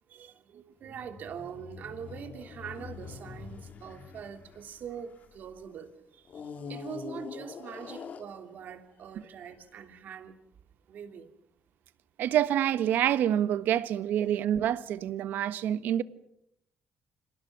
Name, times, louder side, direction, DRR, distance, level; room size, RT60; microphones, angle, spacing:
voice 1, 0.1-10.4 10.9-11.3, right 7 dB, 65° right, 3.0 m, -43 dB
sound 1, 0.8-5.5 6.3-8.8 9.5-9.6, left 6 dB, 50° left, 2.3 m, -44 dB
voice 2, 12.2-16.0, right 10 dB, 80° right, 1.3 m, -27 dB
30.0 x 26.5 x 6.0 m
cardioid pair, 115°, 3 cm